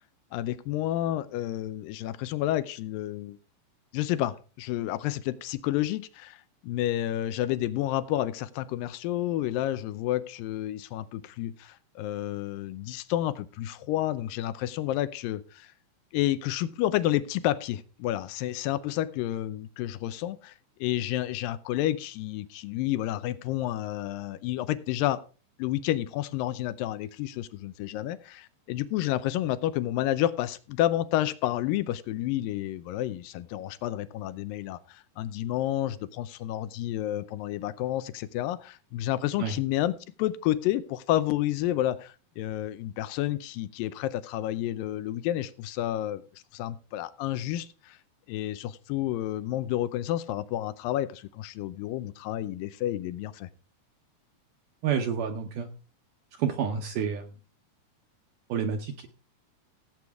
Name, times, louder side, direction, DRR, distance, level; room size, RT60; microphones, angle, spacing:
voice 1, 0.3-3.4 3.9-15.7 16.1-20.5 20.8-25.2 25.6-46.2 46.5-48.0 48.3-53.5, left 13 dB, 80° left, 14 dB, 2.0 m, -30 dB
voice 2, 54.8-55.7 56.4-57.3 58.5-59.1, right 7 dB, 75° right, 4 dB, 2.0 m, -29 dB
16.5 x 7.9 x 3.5 m, 0.35 s
omnidirectional pair, 4.7 m